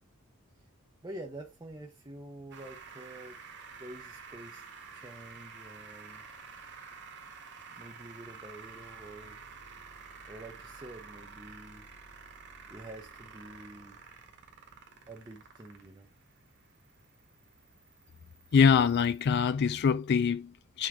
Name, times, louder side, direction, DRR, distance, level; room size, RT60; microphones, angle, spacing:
voice 1, 1.0-3.4 3.8-4.7 4.9-6.2 7.7-9.4 10.3-11.9 12.7-14.0 15.1-16.1, right 1 dB, 20° right, 0.7 m, -47 dB
sound 1, 2.5-19.5, right 5 dB, 50° right, 1.6 m, -50 dB
voice 2, 18.5-20.9, left 6 dB, 50° left, 0.4 m, -24 dB
6.1 x 3.7 x 4.9 m
head